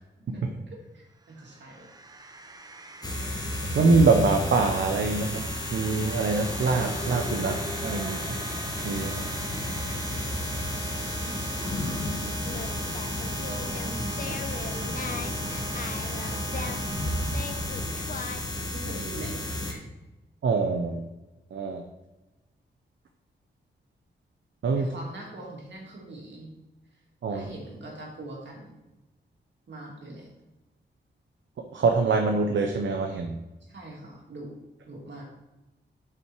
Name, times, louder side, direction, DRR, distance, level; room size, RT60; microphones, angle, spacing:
voice 1, 0.3-1.9 11.2-12.1 13.3-18.2 18.7-19.9 24.7-26.5 27.3-28.8 29.7-30.3 33.6-34.6 34.8-35.2, right 2 dB, 70° right, -2 dB, 2.8 m, -43 dB
sound 1, 1.2-18.9, right 3 dB, 20° right, 0.7 m, -40 dB
sound 2, 3.0-19.7, left 1 dB, 20° left, 1.3 m, -32 dB
voice 2, 3.7-5.4 5.7-8.3 8.8-9.2 20.4-21.0 21.5-21.8 24.6-24.9 27.2-27.5 31.7-33.4, right 4 dB, 90° right, 4 dB, 0.8 m, -24 dB
Singing, 12.4-18.6, left 5 dB, 50° left, 0.7 m, -40 dB
7.9 x 6.0 x 4.6 m, 1.1 s
wide cardioid pair, 130°, 19 cm